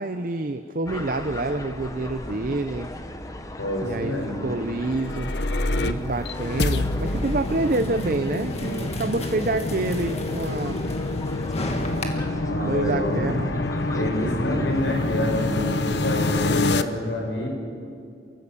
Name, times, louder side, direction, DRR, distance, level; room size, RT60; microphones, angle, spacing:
voice 1, 0.0-2.9 3.8-4.2 4.4-5.3 5.8-10.8 12.6-13.5, right 2 dB, 50° right, 9 dB, 0.7 m, -27 dB
sound 1, 0.8-16.5, left 1 dB, 20° left, 1.2 m, -37 dB
voice 2, 3.6-4.5 12.4-13.4 13.9-17.5, left 1 dB, 90° left, 1 dB, 5.4 m, -27 dB
sound 2, 4.8-16.8, left 2 dB, 70° left, 0.9 m, -27 dB
sound 3, 7.0-12.0, left 1 dB, 35° left, 2.0 m, -35 dB
29.5 x 14.0 x 8.4 m, 2.4 s
head